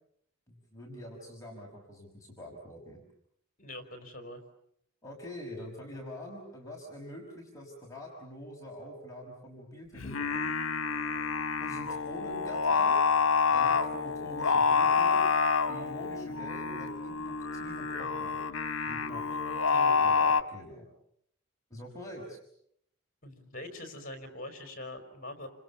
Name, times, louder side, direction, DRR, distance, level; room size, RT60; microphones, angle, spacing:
voice 1, 0.5-3.0 5.0-10.5 11.6-13.0 13.5-15.2 15.7-18.5 18.9-19.2 20.0-20.8 21.7-22.4, left 1 dB, 15° left, -2 dB, 5.5 m, -45 dB
voice 2, 3.6-4.4 19.3-20.3 23.2-25.5, left 1 dB, 45° left, 7 dB, 4.8 m, -44 dB
Singing, 10.0-20.4, left 5 dB, 80° left, 1.3 m, -28 dB
30.0 x 26.5 x 7.0 m, 0.70 s
head